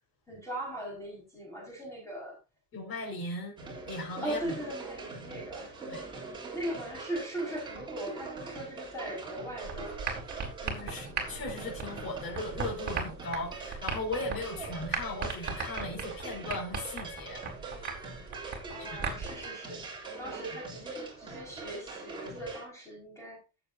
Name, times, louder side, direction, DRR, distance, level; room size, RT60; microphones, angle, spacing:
voice 1, 0.3-2.4 4.2-5.8 6.5-10.1 18.7-19.9 20.2-23.4, right 1 dB, 10° left, 5.5 m, -39 dB
voice 2, 2.7-3.6 3.9-4.5 5.8-6.0 10.6-17.4 18.8-19.0, left 2 dB, 50° left, 5.3 m, -38 dB
sound 1, 3.6-22.6, right 3 dB, 15° right, 3.9 m, -43 dB
sound 2, 9.6-19.5, right 5 dB, 35° right, 4.0 m, -38 dB
15.0 x 7.8 x 2.8 m
cardioid pair, 165°, 29 cm